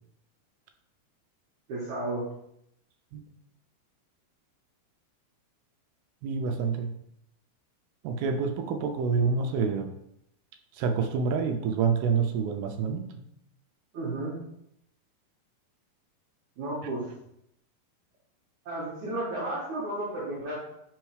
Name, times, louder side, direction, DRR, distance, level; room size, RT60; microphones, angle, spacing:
voice 1, 1.7-2.3 13.9-14.4 16.6-17.1 18.7-20.6, right 2 dB, 60° right, -7 dB, 2.2 m, -33 dB
voice 2, 6.2-6.9 8.0-9.9 10.8-13.1, right 5 dB, 80° right, 6 dB, 2.5 m, -27 dB
5.4 x 4.4 x 4.7 m, 0.76 s
omnidirectional pair, 4.7 m